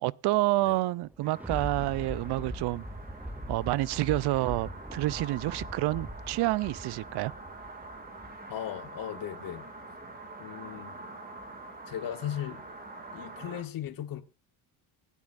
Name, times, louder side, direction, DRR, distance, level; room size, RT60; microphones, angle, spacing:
voice 1, 0.0-2.8 3.5-7.3, right 18 dB, 55° right, 0.6 m, -28 dB
Thunder, 1.0-8.5 9.0-9.1, equal, 5° right, 0.5 m, -41 dB
sound 1, 1.2-13.6, right 2 dB, 20° right, 2.3 m, -46 dB
voice 2, 8.5-9.6 10.4-11.0 11.9-12.6 13.1-14.2, left 10 dB, 45° left, 1.2 m, -37 dB
24.0 x 8.4 x 2.5 m
cardioid pair, 105°, 47 cm